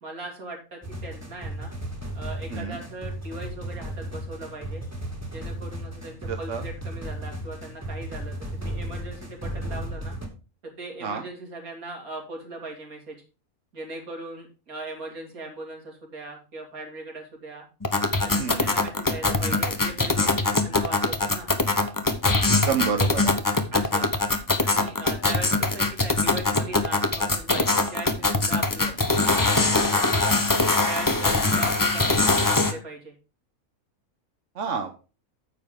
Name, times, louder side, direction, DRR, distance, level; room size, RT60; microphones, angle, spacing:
voice 1, 0.0-1.7 2.1-4.8 5.3-10.1 10.6-13.2 13.7-17.6 18.2-21.5 23.7-24.1 24.6-30.2 30.8-33.1, right 2 dB, 80° right, 1 dB, 2.9 m, -39 dB
Totalitarian obediance, 0.8-10.3, right 1 dB, 10° right, 1.9 m, -35 dB
voice 2, 6.3-6.6 11.0-11.2 18.4-18.7 22.4-23.3 34.5-34.9, right 6 dB, 60° right, 5 dB, 1.2 m, -29 dB
sound 1, 17.8-32.7, left 3 dB, 20° left, 0.6 m, -22 dB
9.6 x 7.1 x 3.7 m, 0.33 s
omnidirectional pair, 1.5 m